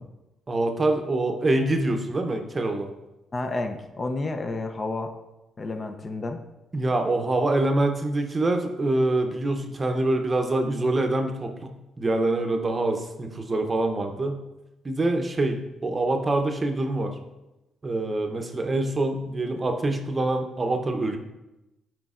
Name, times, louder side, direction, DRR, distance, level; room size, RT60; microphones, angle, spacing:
voice 1, 0.5-2.9 6.7-11.7 12.0-14.4 14.8-17.1 17.8-21.2, right 2 dB, 30° right, 5 dB, 0.7 m, -25 dB
voice 2, 3.3-5.1 5.6-6.4, left 2 dB, 35° left, 5 dB, 0.6 m, -30 dB
9.2 x 4.5 x 2.5 m, 0.98 s
cardioid pair, 90°, 0 cm